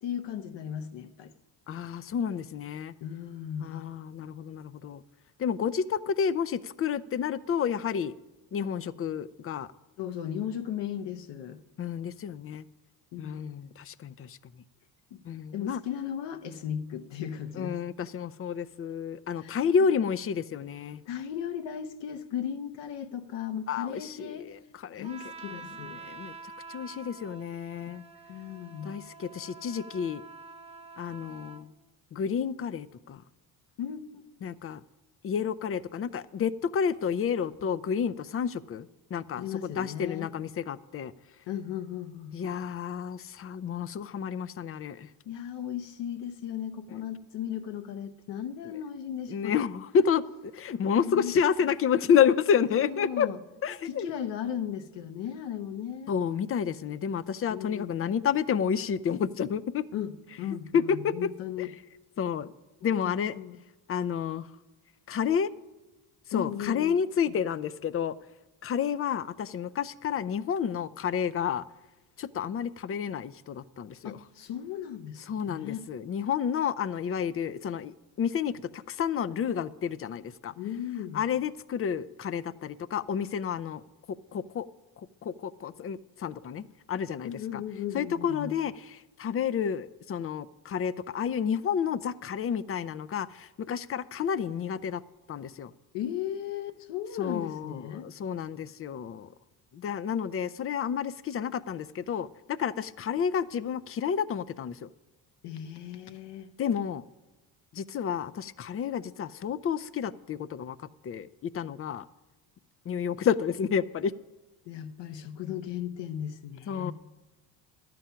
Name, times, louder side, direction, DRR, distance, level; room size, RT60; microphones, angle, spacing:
voice 1, 0.0-1.3 3.0-3.8 10.0-11.6 13.1-13.5 15.1-15.2 15.5-17.8 19.4-19.6 21.1-24.5 24.9-26.0 28.3-28.9 33.8-34.2 39.4-40.3 41.5-42.3 45.2-49.6 50.9-51.3 51.6-51.7 52.7-53.4 53.8-56.1 57.5-58.0 59.9-61.7 63.0-63.6 66.3-67.0 67.3-67.4 74.0-75.9 80.6-81.2 87.2-88.5 95.9-98.1 105.4-106.5 114.7-116.9, left 9 dB, 65° left, 8 dB, 0.9 m, -36 dB
voice 2, 1.7-2.9 3.6-5.0 5.4-8.1 8.5-9.7 11.8-12.6 13.2-14.4 15.3-15.8 17.6-21.0 23.7-25.1 25.9-26.3 26.7-28.0 28.8-30.2 31.0-31.7 32.1-33.2 34.4-34.8 35.2-41.1 42.3-45.1 49.3-53.3 53.6-54.1 56.1-59.8 60.7-61.3 61.6-61.7 62.2-62.5 62.8-63.4 63.9-64.5 65.1-65.5 66.3-68.2 68.6-71.6 72.2-74.2 75.3-80.5 81.1-83.8 84.1-84.7 85.0-87.6 87.9-95.0 95.3-95.7 97.2-99.3 99.7-104.9 106.6-107.0 107.7-110.8 111.0-112.0 112.9-114.1 116.7-116.9, left 7 dB, 30° left, 17 dB, 0.4 m, -30 dB
Trumpet, 25.0-31.7, right 3 dB, 15° right, 1.0 m, -47 dB
11.5 x 7.6 x 5.6 m, 1.1 s
supercardioid pair, 70°, 46 cm